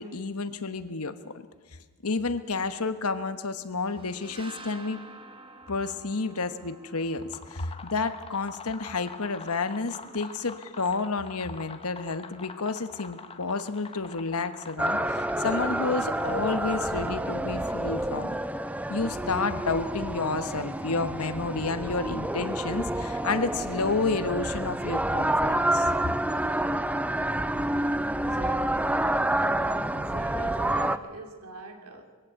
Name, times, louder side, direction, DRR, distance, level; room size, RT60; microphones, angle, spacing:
voice 1, 0.0-1.3 2.0-5.0 5.7-18.4 18.9-25.9, left 4 dB, 80° left, 10 dB, 1.3 m, -30 dB
sound 1, 3.8-9.4, right 2 dB, 25° right, 1.7 m, -50 dB
sound 2, 7.1-17.4, left 4 dB, 25° left, 1.1 m, -45 dB
sound 3, 14.8-31.0, right 1 dB, 5° right, 0.5 m, -28 dB
voice 2, 28.2-32.1, right 2 dB, 80° right, 4 dB, 2.7 m, -44 dB
22.0 x 16.0 x 8.1 m, 1.4 s
head